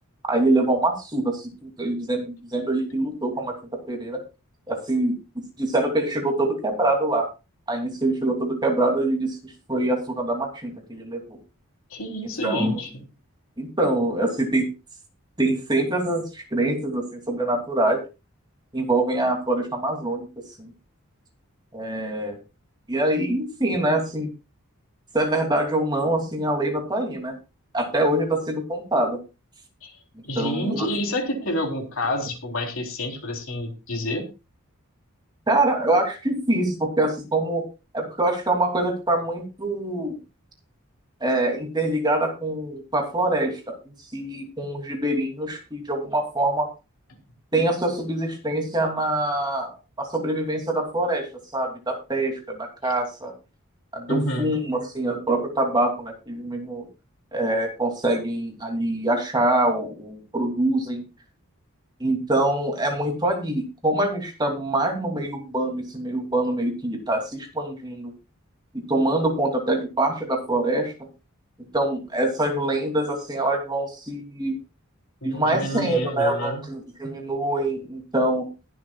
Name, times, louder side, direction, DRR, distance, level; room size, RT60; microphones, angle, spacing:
voice 1, 0.2-3.5 3.9-4.2 4.7-5.2 5.6-7.3 7.7-11.4 12.4-12.7 13.6-14.6 15.4-18.0 18.7-20.3 20.6-20.7 21.7-22.4 22.9-24.3 25.1-27.3 27.7-29.2 30.3-30.9 35.5-37.6 37.9-40.2 41.2-43.8 44.1-46.7 47.5-51.3 51.5-53.3 53.9-56.9 57.3-61.0 62.0-68.1 68.9-70.9 71.7-74.5 75.2-78.5, right 1 dB, 20° right, 2 dB, 2.8 m, -24 dB
voice 2, 11.9-12.9 29.8-29.9 30.2-34.3 54.1-54.5 75.2-76.7, left 1 dB, 65° left, 1 dB, 3.6 m, -29 dB
21.0 x 7.8 x 2.4 m, 0.29 s
head